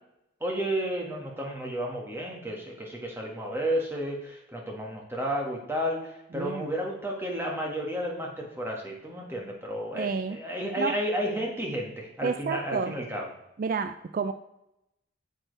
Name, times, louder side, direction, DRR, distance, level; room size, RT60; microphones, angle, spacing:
voice 1, 0.4-13.3, equal, 10° right, -1 dB, 1.6 m, -32 dB
voice 2, 6.3-6.7 9.9-10.4 10.8-10.9 12.2-12.9 13.6-14.3, right 5 dB, 40° right, 9 dB, 0.3 m, -30 dB
8.8 x 7.4 x 3.3 m, 0.86 s
head